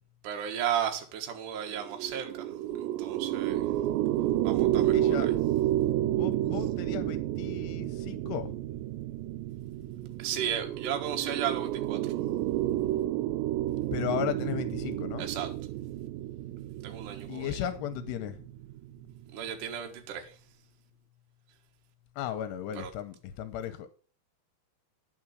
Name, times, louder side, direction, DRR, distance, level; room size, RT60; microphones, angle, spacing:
voice 1, 0.2-2.3 3.0-3.6 4.4-5.3 10.2-12.0 15.2-15.5 16.8-17.6 19.3-20.3 22.7-22.9, right 9 dB, 60° right, 2.5 m, -34 dB
sound 1, 1.7-19.2, right 13 dB, 90° right, 2.8 m, -30 dB
voice 2, 4.9-5.3 6.2-8.5 13.9-15.3 17.3-18.3 22.2-23.9, left 10 dB, 85° left, 2.8 m, -35 dB
9.9 x 6.1 x 6.2 m
omnidirectional pair, 4.9 m